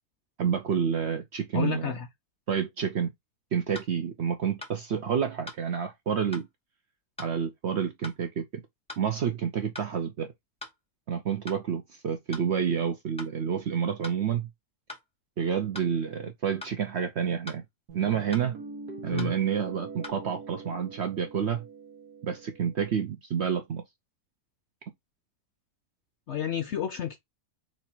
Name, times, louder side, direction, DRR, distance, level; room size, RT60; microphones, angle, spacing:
voice 1, 0.4-2.0 2.5-3.1 3.5-6.5 7.2-8.6 9.0-10.3 11.1-14.5 15.4-17.6 17.9-18.5 19.0-21.6 22.2-23.8, right 7 dB, 60° right, 0.7 m, -29 dB
voice 2, 1.5-2.1 19.1-19.3 26.3-27.2, left 9 dB, 65° left, 0.7 m, -30 dB
sound 1, 3.7-3.9 4.6-4.8 5.5-5.6 6.3-6.5 7.2-7.3 8.0-8.2 8.9-9.1 9.7-9.9 10.6-10.8 11.5-11.6 12.3-12.5 13.2-13.3 14.0-14.2 14.9-15.1 15.7-15.9 16.6-16.8 17.5-17.6 18.3-18.5 19.2-19.3 20.0-20.1, left 2 dB, 5° left, 1.1 m, -42 dB
Guitar, 17.9-22.9, right 5 dB, 75° right, 1.5 m, -43 dB
4.2 x 2.8 x 4.3 m
omnidirectional pair, 1.7 m